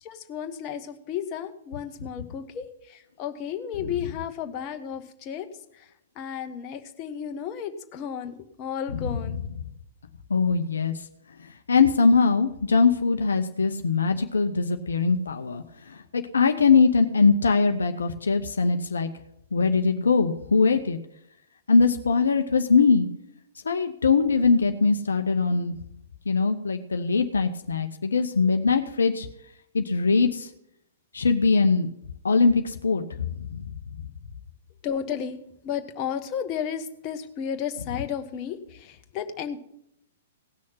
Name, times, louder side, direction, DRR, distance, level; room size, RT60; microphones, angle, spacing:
voice 1, 0.0-5.5 5.7-5.9 6.2-9.4 34.8-35.4 35.6-39.6, left 8 dB, 35° left, 6 dB, 1.2 m, -33 dB
voice 2, 10.3-10.9 11.4-19.1 19.5-21.0 21.7-23.1 23.6-25.7 26.3-29.3 29.7-30.5 31.1-31.9 32.2-33.7, left 4 dB, 70° left, 7 dB, 0.8 m, -22 dB
17.5 x 6.4 x 5.7 m, 0.78 s
figure-of-eight pair, 110°, 0 cm